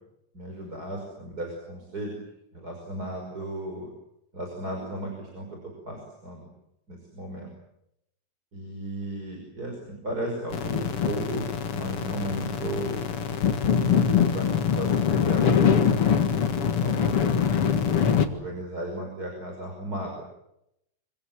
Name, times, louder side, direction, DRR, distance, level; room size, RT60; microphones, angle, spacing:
voice 1, 0.3-2.2 2.5-3.9 4.3-6.5 6.9-7.5 8.5-11.5 11.7-13.0 13.8-16.3 16.6-17.6 18.2-20.2, right 1 dB, 30° right, 1 dB, 5.9 m, -35 dB
sound 1, 10.5-18.3, left 7 dB, 55° left, 2.6 m, -23 dB
25.5 x 25.5 x 7.6 m, 0.81 s
omnidirectional pair, 3.3 m